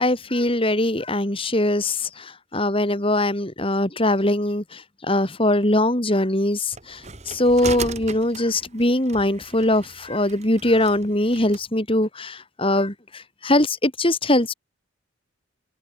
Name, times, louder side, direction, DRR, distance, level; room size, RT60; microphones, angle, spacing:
voice 1, 0.0-14.5, left 1 dB, 25° left, 3.4 m, -22 dB
sound 1, 6.7-11.6, right 4 dB, 35° right, 5.4 m, -37 dB
open air
head